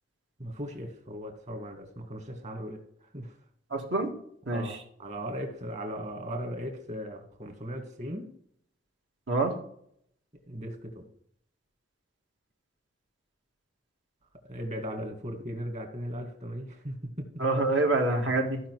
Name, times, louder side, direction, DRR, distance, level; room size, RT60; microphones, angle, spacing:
voice 1, 0.4-2.8 3.1-3.3 4.5-4.7 5.0-8.3 10.5-11.1 14.5-17.3, equal, 35° right, 4 dB, 1.9 m, -37 dB
voice 2, 3.7-4.1 4.5-4.8 9.3-9.5 17.4-18.6, right 2 dB, 70° right, 1 dB, 1.9 m, -26 dB
15.0 x 5.2 x 4.7 m, 0.67 s
head